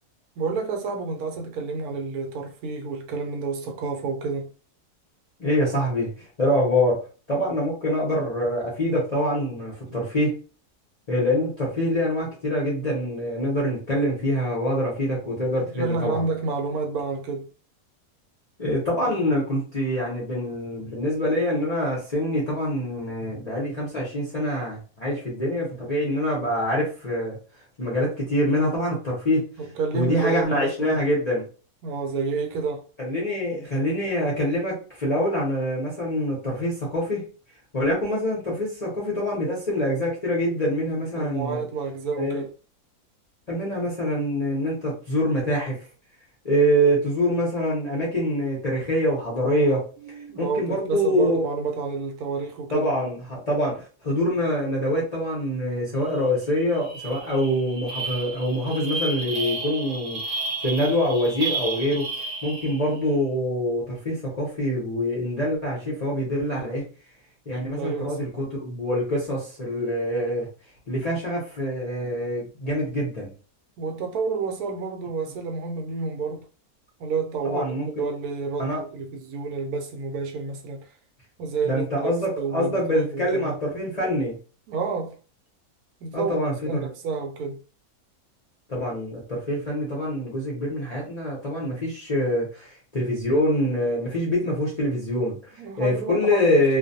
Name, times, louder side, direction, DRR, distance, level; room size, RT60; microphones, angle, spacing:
voice 1, 0.4-4.5 15.8-17.5 29.6-31.0 31.8-32.8 41.2-42.5 50.0-52.9 67.7-68.2 73.8-76.4 77.0-80.9 81.4-82.1 82.4-83.6 84.7-85.2 86.0-87.6 95.5-96.8, right 4 dB, 75° right, 1.1 m, -29 dB
voice 2, 5.4-7.0 7.3-10.3 11.1-16.3 18.6-27.4 27.8-29.5 29.9-31.5 33.0-37.2 37.7-41.6 42.2-42.4 43.5-45.9 46.4-49.8 50.2-51.4 52.7-66.9 67.5-70.5 70.9-73.3 77.4-77.9 78.6-78.8 81.6-84.4 86.1-86.9 88.7-96.8, equal, 40° left, 0.5 m, -25 dB
sound 1, 56.1-56.3 56.6-63.0, right 3 dB, 60° right, 0.5 m, -32 dB
2.5 x 2.1 x 2.6 m
omnidirectional pair, 1.6 m